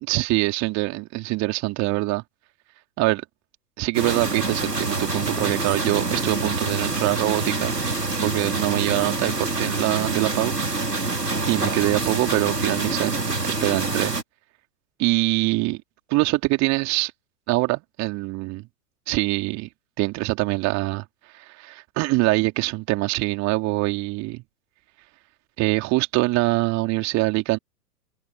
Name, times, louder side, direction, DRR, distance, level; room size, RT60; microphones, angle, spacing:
voice 1, 0.1-2.2 3.0-3.2 3.8-7.8 8.2-11.1 11.5-13.2 13.4-14.1 15.0-15.8 16.1-17.1 17.5-18.7 19.1-19.7 20.0-21.1 21.6-24.4 25.6-27.6, right 22 dB, 35° right, 3.5 m, -24 dB
sound 1, 3.9-14.2, right 3 dB, 85° right, 3.0 m, -26 dB
figure-of-eight pair, 100°, 47 cm